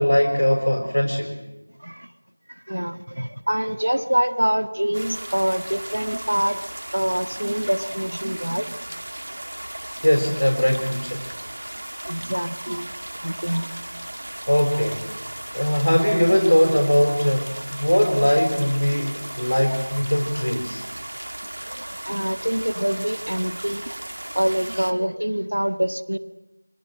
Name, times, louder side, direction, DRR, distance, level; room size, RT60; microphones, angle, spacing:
voice 1, 0.0-1.4 10.0-11.3 14.5-15.1 15.5-20.8, equal, 85° left, 2 dB, 5.6 m, -20 dB
voice 2, 1.8-2.1 2.5-6.6 6.9-8.7 9.3-9.4 10.3-10.4 12.0-12.9 13.2-13.7 21.7-23.9 24.3-26.2, equal, 75° right, 11 dB, 1.7 m, -25 dB
sound 1, 4.9-24.9, right 1 dB, 45° right, 2.0 m, -36 dB
28.0 x 25.5 x 7.8 m, 1.0 s
figure-of-eight pair, 175°, 0 cm